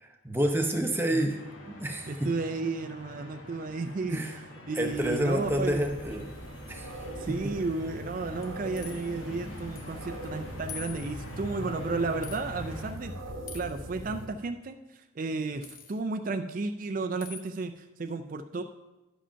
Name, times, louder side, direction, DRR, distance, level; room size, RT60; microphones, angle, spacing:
voice 1, 0.0-1.4 1.7-2.3 4.1-4.4 4.7-6.2 6.7-7.0, right 1 dB, 10° right, 3 dB, 0.8 m, -29 dB
sound 1, 1.3-12.9, equal, 90° left, 1.6 m, -44 dB
voice 2, 2.1-4.2 4.7-5.8 7.2-13.1 13.5-18.6, right 3 dB, 40° right, 6 dB, 0.4 m, -33 dB
sound 2, 4.8-14.3, right 1 dB, 85° right, 1.2 m, -42 dB
sound 3, 8.4-9.1 9.8-10.0 10.2-10.3 10.7-11.4 12.2-12.4 13.5-13.8 15.6-16.0 17.2-17.5, left 7 dB, 45° left, 0.8 m, -44 dB
11.0 x 5.0 x 5.7 m, 1.0 s
head